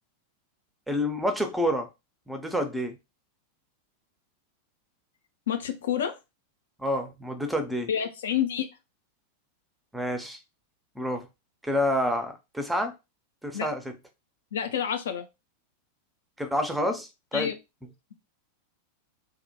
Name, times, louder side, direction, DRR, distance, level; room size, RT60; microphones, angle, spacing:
voice 1, 0.9-1.9 2.3-3.0 6.8-7.9 9.9-10.4 11.0-11.3 11.6-12.9 13.4-13.9 16.4-17.5, equal, 5° right, 0.5 m, -28 dB
voice 2, 5.5-6.2 7.9-8.7 13.5-13.7 14.5-15.3 17.3-17.5, left 9 dB, 60° left, 0.4 m, -28 dB
2.3 x 2.1 x 2.7 m
figure-of-eight pair, 90°, 0 cm